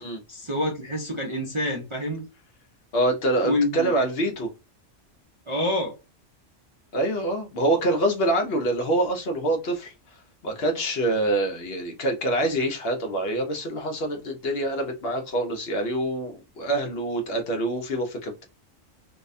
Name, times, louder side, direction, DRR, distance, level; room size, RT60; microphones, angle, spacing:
voice 1, 0.3-2.3 3.4-4.0 5.5-5.9, left 1 dB, 35° right, 0.5 m, -27 dB
voice 2, 2.9-4.5 6.9-9.9 10.4-18.4, right 1 dB, 60° left, 0.8 m, -25 dB
2.7 x 2.1 x 2.4 m
omnidirectional pair, 1.3 m